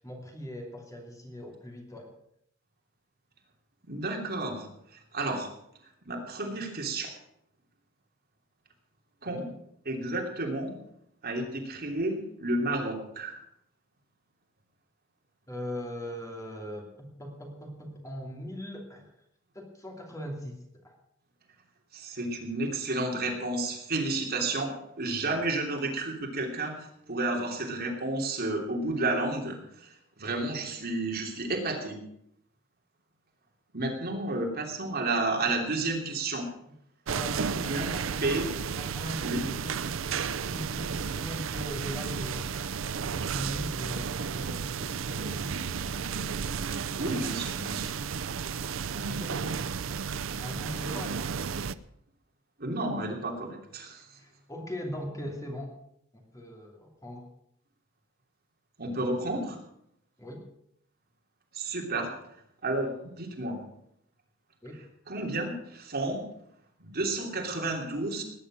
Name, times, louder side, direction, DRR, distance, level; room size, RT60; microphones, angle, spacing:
voice 1, 0.0-2.1 9.3-9.5 15.5-19.1 19.5-21.0 35.4-35.5 37.1-39.8 40.3-42.6 42.9-45.4 47.2-47.4 48.9-49.5 50.4-51.2 54.2-55.8 56.1-57.3 60.2-60.4 64.6-64.8, equal, 15° left, 1 dB, 2.9 m, -40 dB
voice 2, 3.9-4.7 4.9-5.5 6.0-7.1 9.2-9.5 9.8-10.7 11.2-13.4 21.9-26.8 27.1-32.0 33.7-36.5 37.5-37.9 38.2-38.5 39.2-39.4 47.0-47.9 52.6-54.0 58.8-59.6 61.5-62.1 62.6-63.6 65.1-66.2 66.8-68.2, right 2 dB, 50° right, 1 dB, 3.0 m, -31 dB
sound 1, 37.1-51.7, right 6 dB, 70° right, 0.6 m, -33 dB
19.0 x 9.8 x 6.2 m, 0.74 s
head